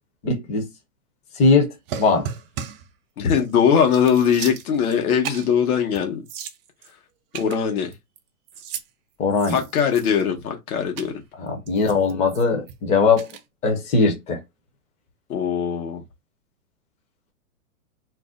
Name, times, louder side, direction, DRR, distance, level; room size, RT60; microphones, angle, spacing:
voice 1, 0.2-0.7 1.4-2.3 9.2-9.6 11.4-13.3 13.6-14.4, left 4 dB, 15° left, 0.6 m, -20 dB
sound 1, 1.9-2.9 3.4-3.5 3.8-5.0 5.2-5.5 5.9-6.0 6.3-6.9 7.3-8.2 8.5-8.9 9.3-10.3 11.0-11.1 11.7-12.7 13.2-13.4, right 9 dB, 40° right, 0.5 m, -35 dB
voice 2, 3.2-6.2 7.3-7.9 9.5-11.1 15.3-16.0, left 7 dB, 80° left, 1.0 m, -21 dB
2.6 x 2.1 x 3.6 m
hypercardioid pair, 135°, 43 cm